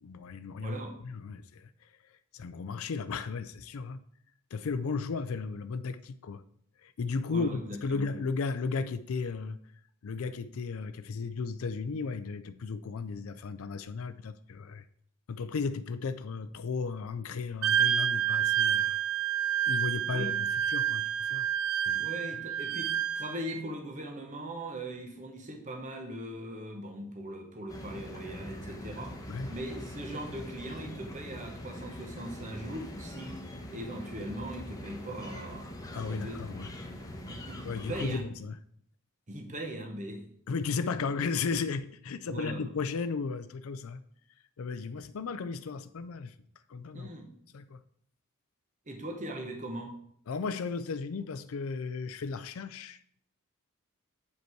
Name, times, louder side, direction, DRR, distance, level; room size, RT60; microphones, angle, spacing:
voice 1, 0.0-0.8 1.0-1.9 2.3-4.0 4.5-6.4 6.8-9.6 10.0-14.8 15.3-19.0 19.7-21.5 21.9-22.1 29.3-29.5 35.9-36.7 37.6-38.6 40.5-44.0 44.6-46.3 46.7-47.1 47.5-47.8 50.3-53.0, left 4 dB, 70° left, 11 dB, 0.4 m, -35 dB
voice 2, 0.6-0.9 7.3-8.1 20.1-20.3 21.9-22.9 23.1-29.2 29.5-33.4 33.7-35.7 36.1-36.5 37.3-38.2 39.3-40.2 42.3-42.6 46.9-47.3 48.9-49.9, right 1 dB, 35° right, 4 dB, 1.2 m, -40 dB
Wind instrument woodwind instrument, 17.6-23.6, right 9 dB, 65° right, 0.4 m, -29 dB
sound 1, 27.7-38.2, left 1 dB, 15° left, 1.0 m, -43 dB
8.2 x 5.2 x 4.6 m, 0.66 s
head